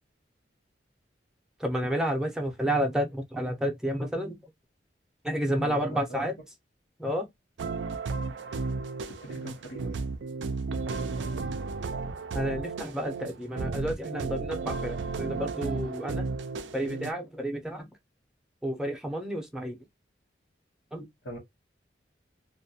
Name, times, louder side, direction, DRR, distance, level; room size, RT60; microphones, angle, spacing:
voice 1, 1.6-4.3 5.2-6.4 7.0-7.3 12.3-16.3 16.7-17.9 18.6-19.8 20.9-21.1, equal, 5° right, 0.5 m, -30 dB
voice 2, 5.6-6.2 9.1-9.9 21.2-21.4, equal, 85° left, 1.0 m, -42 dB
sound 1, 7.6-17.1, right 4 dB, 85° right, 0.4 m, -33 dB
2.2 x 2.1 x 2.6 m
head